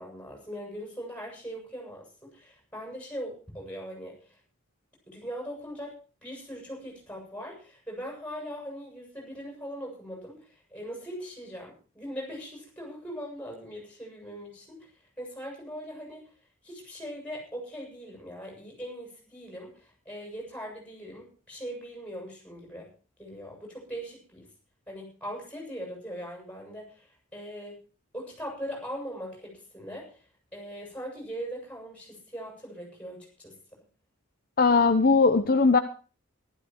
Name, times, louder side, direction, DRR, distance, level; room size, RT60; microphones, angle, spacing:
voice 1, 0.0-4.4 5.1-14.8 15.2-16.2 16.6-22.9 23.2-24.5 24.9-27.8 28.1-30.3 30.5-33.6, equal, 5° left, -1 dB, 7.4 m, -40 dB
voice 2, 34.6-35.8, left 4 dB, 45° left, 7 dB, 0.8 m, -20 dB
15.0 x 12.5 x 4.6 m, 0.36 s
head